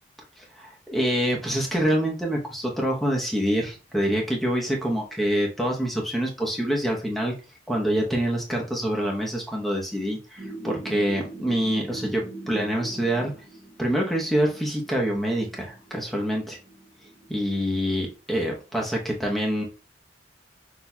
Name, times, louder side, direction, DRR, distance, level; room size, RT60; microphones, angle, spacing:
voice 1, 0.4-7.3 7.7-13.3 13.8-16.6 17.3-19.6, equal, ahead, -2 dB, 0.9 m, -26 dB
sound 1, 10.4-17.9, right 2 dB, 30° right, 1.0 m, -42 dB
6.0 x 2.8 x 2.3 m, 0.33 s
head